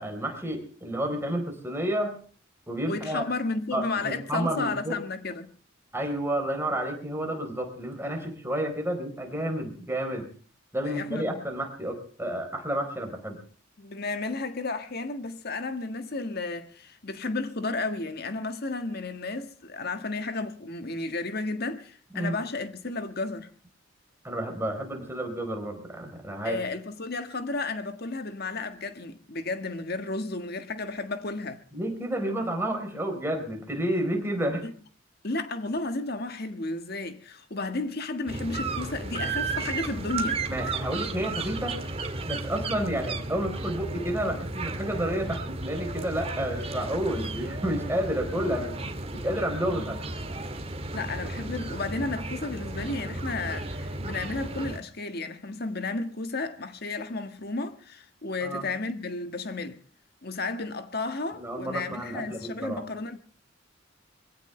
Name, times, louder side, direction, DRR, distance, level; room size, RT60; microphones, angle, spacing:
voice 1, 0.0-2.1 2.7-3.2 3.7-5.0 5.9-10.3 10.7-13.4 22.1-22.4 24.2-26.6 31.7-34.6 40.5-41.8 42.3-48.7 49.1-50.0 58.4-58.7 61.4-62.8, right 1 dB, 10° right, 4.2 m, -30 dB
voice 2, 2.9-5.5 10.8-11.4 13.8-23.5 26.4-31.6 34.6-34.7 35.2-40.4 49.6-49.8 50.9-59.8 60.2-63.2, left 3 dB, 50° left, 1.7 m, -33 dB
sound 1, 38.3-54.8, right 3 dB, 30° right, 1.9 m, -34 dB
24.0 x 17.0 x 3.3 m
head